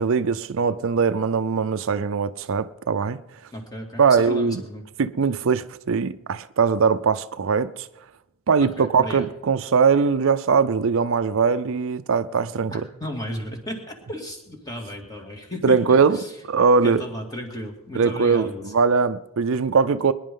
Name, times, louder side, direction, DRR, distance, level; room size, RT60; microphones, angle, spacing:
voice 1, 0.0-3.2 4.0-4.6 5.0-7.9 8.5-12.8 15.6-17.0 17.9-20.1, right 5 dB, 65° right, 0.5 m, -21 dB
voice 2, 3.5-4.8 8.8-9.3 12.7-16.3 16.8-18.6, left 1 dB, 15° left, 2.4 m, -34 dB
23.0 x 10.5 x 3.8 m
head